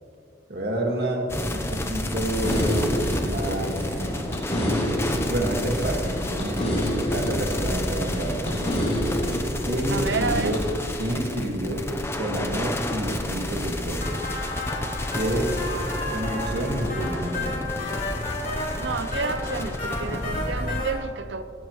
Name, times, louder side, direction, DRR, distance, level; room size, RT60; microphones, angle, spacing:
voice 1, 0.5-3.8 4.4-8.8 9.7-10.7 11.0-11.9 12.2-14.2 15.1-15.6 16.1-17.8, right 1 dB, 60° right, 1 dB, 1.9 m, -29 dB
sound 1, 1.3-20.8, left 1 dB, 15° left, 0.8 m, -31 dB
sound 2, 2.4-10.6, equal, 35° left, 3.9 m, -28 dB
voice 2, 9.9-10.5 18.8-21.4, right 4 dB, 85° right, 11 dB, 0.7 m, -30 dB
sound 3, 14.0-20.9, left 2 dB, 50° left, 3.4 m, -32 dB
17.5 x 16.5 x 3.2 m, 2.6 s
head